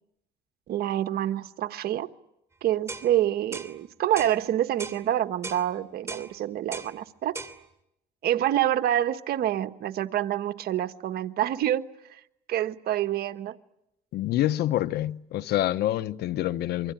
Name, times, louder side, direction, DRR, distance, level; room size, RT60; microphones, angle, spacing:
voice 1, 0.7-2.1 2.6-7.4 8.2-11.8 12.1-12.2 12.5-13.5, right 12 dB, 65° right, 1.4 m, -27 dB
sound 1, 2.9-3.1 3.5-3.7 4.2-4.4 4.8-5.0 5.4-5.6 6.1-6.3 6.7-6.9 7.3-7.6, right 3 dB, 15° right, 3.0 m, -37 dB
voice 2, 14.1-16.9, left 13 dB, 75° left, 1.0 m, -27 dB
27.0 x 24.5 x 9.0 m
cardioid pair, 110°, 17 cm